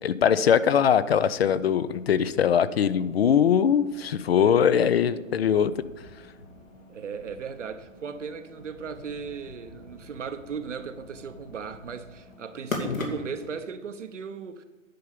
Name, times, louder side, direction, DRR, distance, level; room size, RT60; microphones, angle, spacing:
voice 1, 0.0-5.7 12.8-13.0, left 8 dB, 50° left, 0.6 m, -22 dB
sound 1, 0.7-13.6, left 1 dB, 85° left, 2.4 m, -42 dB
voice 2, 6.9-14.6, right 6 dB, 65° right, 1.0 m, -37 dB
10.5 x 5.5 x 6.8 m
figure-of-eight pair, 125°, 39 cm